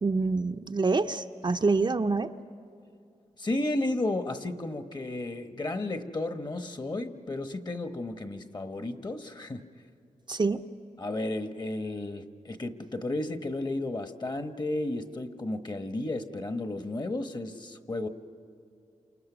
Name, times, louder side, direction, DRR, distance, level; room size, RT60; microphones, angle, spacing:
voice 1, 0.0-2.3 10.3-10.6, right 3 dB, 35° right, 7 dB, 0.6 m, -26 dB
voice 2, 3.4-9.7 11.0-18.1, left 2 dB, 35° left, 8 dB, 1.2 m, -33 dB
29.5 x 28.0 x 6.1 m, 2.4 s
wide cardioid pair, 95°, 13 cm